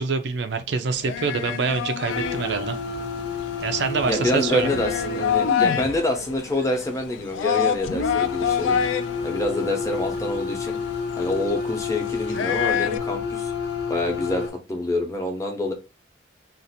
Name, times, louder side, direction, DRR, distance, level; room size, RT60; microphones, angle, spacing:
voice 1, 0.0-2.8 3.6-4.7, right 5 dB, 60° right, 0.4 m, -25 dB
sound 1, 0.9-13.0, left 8 dB, 85° left, 0.3 m, -28 dB
sound 2, 2.1-6.0 7.8-14.5, left 4 dB, 60° left, 0.8 m, -30 dB
voice 2, 4.0-8.8 9.2-10.8 11.2-13.5 13.9-14.4 14.7-15.7, left 1 dB, 15° left, 0.7 m, -26 dB
2.6 x 2.4 x 4.1 m
head